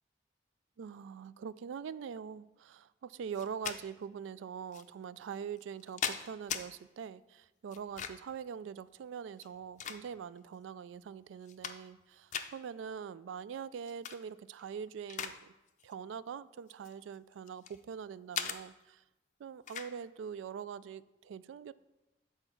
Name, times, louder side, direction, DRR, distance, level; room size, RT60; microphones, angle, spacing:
voice 1, 0.8-15.5 15.8-19.0 19.4-21.7, right 7 dB, 90° right, 0.3 m, -43 dB
sound 1, 3.3-3.8 4.7-4.8 5.6-6.6 7.7-8.3 9.3-10.4 10.9-11.0 11.4-12.0 12.3-12.5 13.8-14.2 14.6-15.4 15.7-15.9 16.7-17.8 18.3-18.6 19.7-19.9, left 8 dB, 40° left, 0.4 m, -39 dB
8.1 x 4.4 x 5.8 m
head